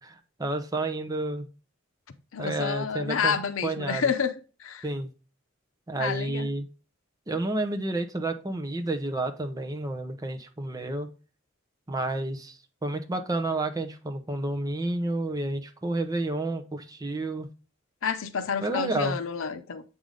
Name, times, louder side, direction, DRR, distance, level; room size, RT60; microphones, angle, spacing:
voice 1, 0.0-1.5 2.4-3.4 3.6-4.0 4.8-5.1 5.9-6.7 7.3-11.1 11.9-17.5 18.6-19.2, right 2 dB, 20° right, 7 dB, 0.8 m, -30 dB
voice 2, 2.3-4.3 4.6-4.9 6.0-6.5 18.0-19.8, left 6 dB, 90° left, 10 dB, 0.6 m, -29 dB
7.9 x 3.6 x 3.7 m, 0.34 s
head